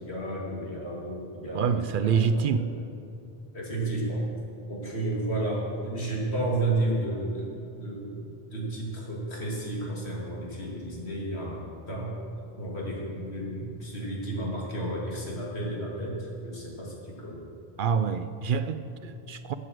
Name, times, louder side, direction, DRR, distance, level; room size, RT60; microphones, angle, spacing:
voice 1, 0.0-2.6 3.5-4.3 4.7-12.1 12.6-17.4, right 2 dB, 90° left, -3 dB, 2.8 m, -32 dB
voice 2, 1.5-2.7 17.8-19.5, right 6 dB, 60° right, 11 dB, 0.7 m, -26 dB
12.5 x 8.4 x 7.6 m, 2.7 s
omnidirectional pair, 1.1 m